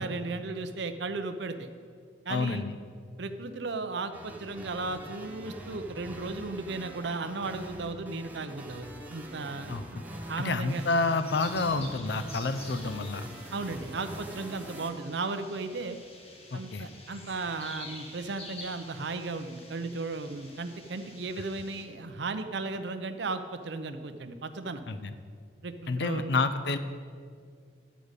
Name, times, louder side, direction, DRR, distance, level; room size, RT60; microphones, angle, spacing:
voice 1, 0.0-1.7 2.3-2.7 3.2-10.0 10.3-10.8 13.5-16.0 16.5-24.8 25.6-26.3, right 3 dB, 65° right, 8 dB, 0.6 m, -35 dB
voice 2, 2.3-2.8 9.7-10.0 10.4-13.3 16.5-16.9 24.9-25.1 25.9-26.8, left 3 dB, 60° left, 9 dB, 0.5 m, -29 dB
sound 1, 4.1-14.9, right 1 dB, 10° right, 0.9 m, -44 dB
sound 2, 10.7-21.9, left 2 dB, 30° left, 1.2 m, -48 dB
11.5 x 5.1 x 8.1 m, 2.1 s
head